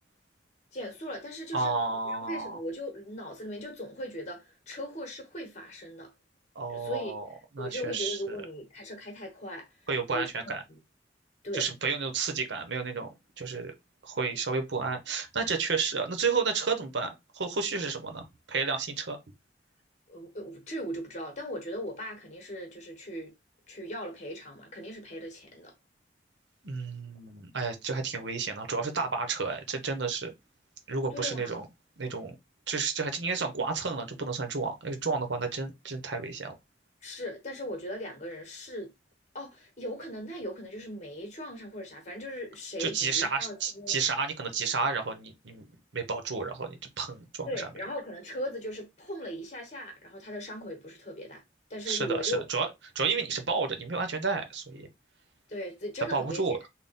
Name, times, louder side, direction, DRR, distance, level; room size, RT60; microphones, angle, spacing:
voice 1, 0.7-1.7 2.0-6.1 6.7-7.1 7.6-9.7 10.1-10.3 11.4-11.7 20.1-23.3 23.7-25.7 31.1-31.6 37.0-38.9 39.3-44.0 47.5-51.4 51.7-52.4 55.5-56.6, equal, 40° left, 1.1 m, -38 dB
voice 2, 1.5-2.6 6.5-7.3 7.6-8.4 9.9-10.6 11.5-13.7 14.0-19.2 26.6-30.3 30.9-31.6 32.0-32.3 32.7-36.5 42.8-45.7 45.9-47.7 51.9-52.7 52.9-54.9 56.1-56.6, right 4 dB, 75° right, 0.8 m, -31 dB
3.5 x 2.2 x 4.1 m
head